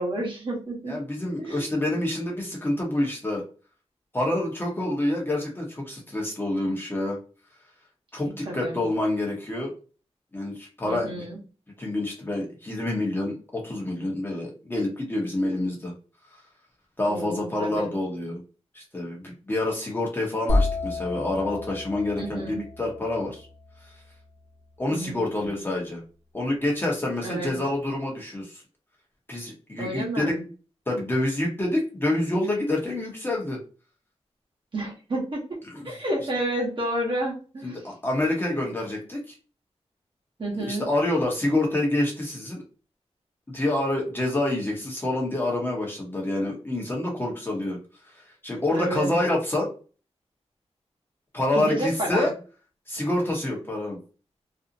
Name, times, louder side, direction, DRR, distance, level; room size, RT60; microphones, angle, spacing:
voice 1, 0.0-1.0 1.4-1.8 8.4-8.8 10.9-11.4 17.1-17.9 22.2-22.6 24.9-25.6 27.2-27.5 29.8-30.4 34.7-35.6 35.8-37.8 40.4-40.9 48.7-49.1 51.5-52.2, right 1 dB, 45° right, -3 dB, 0.9 m, -30 dB
voice 2, 0.9-3.4 4.1-7.2 8.1-9.7 10.3-11.2 11.8-15.9 17.0-18.4 18.7-23.5 24.8-26.0 26.3-28.6 29.3-30.3 30.9-33.6 35.7-35.9 37.6-39.4 40.5-42.6 43.5-47.8 48.1-49.7 51.3-52.3 52.9-54.0, left 1 dB, 20° left, -2 dB, 0.8 m, -27 dB
sound 1, 20.5-24.3, left 2 dB, 75° left, 0.8 m, -30 dB
2.5 x 2.0 x 2.6 m, 0.37 s
wide cardioid pair, 105°, 11 cm